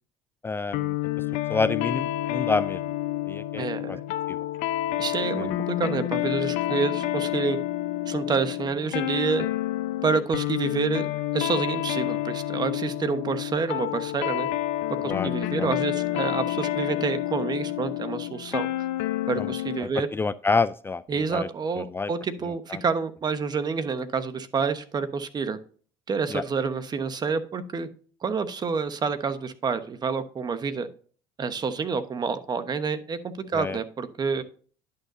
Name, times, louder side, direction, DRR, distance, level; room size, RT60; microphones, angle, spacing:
voice 1, 0.4-0.9 1.5-2.8 3.3-4.0 4.3-4.4 5.4-5.5 6.7-6.8 15.1-15.3 15.6-15.7 19.4-19.5 19.8-21.0 21.3-21.5 21.8-22.1 22.7-22.8 26.3-26.4 33.5-33.8, left 4 dB, 20° left, 15 dB, 0.4 m, -28 dB
sound 1, 0.7-19.9, left 14 dB, 75° left, 0.8 m, -29 dB
voice 2, 3.6-4.0 5.0-7.6 8.1-9.5 10.0-14.5 15.0-18.7 19.3-20.1 21.1-25.6 26.1-27.9 28.2-30.9 31.4-33.2 33.5-34.4, right 5 dB, 35° right, 11 dB, 1.1 m, -28 dB
11.0 x 6.8 x 2.7 m, 0.42 s
supercardioid pair, 80°, 12 cm